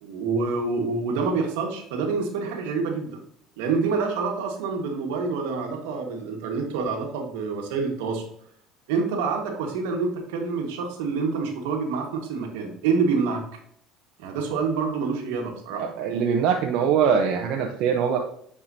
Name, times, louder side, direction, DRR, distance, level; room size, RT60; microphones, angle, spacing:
voice 1, 0.0-3.2 3.6-8.2 8.9-13.4 14.2-15.8, right 4 dB, 85° right, 3 dB, 1.5 m, -27 dB
voice 2, 15.8-18.2, right 7 dB, 70° right, 2 dB, 0.8 m, -22 dB
8.8 x 4.8 x 2.7 m, 0.67 s
supercardioid pair, 95°, 0 cm